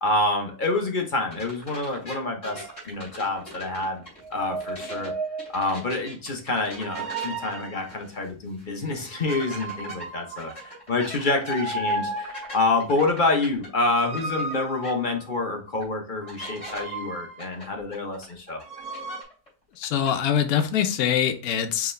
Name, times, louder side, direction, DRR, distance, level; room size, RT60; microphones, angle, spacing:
voice 1, 0.0-4.0 4.3-5.1 5.5-18.6, left 2 dB, 40° left, 2 dB, 0.8 m, -27 dB
sound 1, 1.3-5.1 5.4-8.3 8.6-8.7 9.3-14.6 14.8-14.9 15.8-15.9 16.3-16.8 17.4-19.5 19.7-20.1, equal, 25° left, 2.5 m, -41 dB
sound 2, 2.5-2.8 4.2-5.8 6.7-7.9 9.1-10.9 11.4-12.6 13.8-15.4 16.2-17.6 18.6-19.2, right 2 dB, 75° right, 1.2 m, -34 dB
voice 2, 19.8-21.9, left 9 dB, 80° left, 5 dB, 1.1 m, -24 dB
4.7 x 2.9 x 3.2 m, 0.39 s
omnidirectional pair, 1.6 m